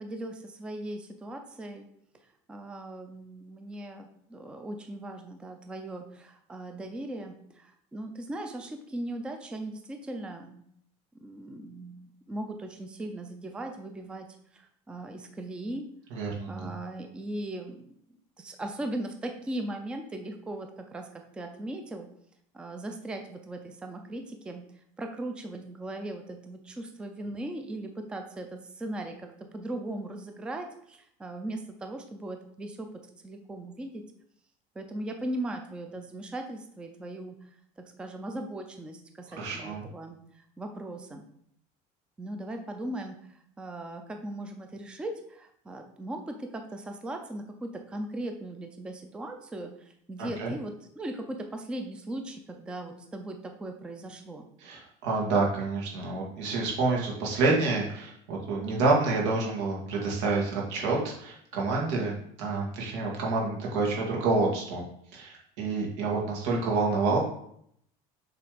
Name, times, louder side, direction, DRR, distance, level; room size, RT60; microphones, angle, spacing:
voice 1, 0.0-1.9 2.5-10.7 11.2-14.3 14.5-15.9 16.5-21.1 21.3-22.1 22.5-24.6 25.0-29.3 29.5-32.9 33.2-34.0 34.8-37.4 37.8-41.3 42.2-54.5, right 1 dB, 5° right, 5 dB, 0.4 m, -38 dB
voice 2, 16.1-16.7 39.3-39.8 50.2-50.5 54.6-64.8 65.1-67.2, right 3 dB, 90° right, -2 dB, 2.1 m, -28 dB
6.9 x 3.4 x 5.0 m, 0.69 s
cardioid pair, 180°, 15 cm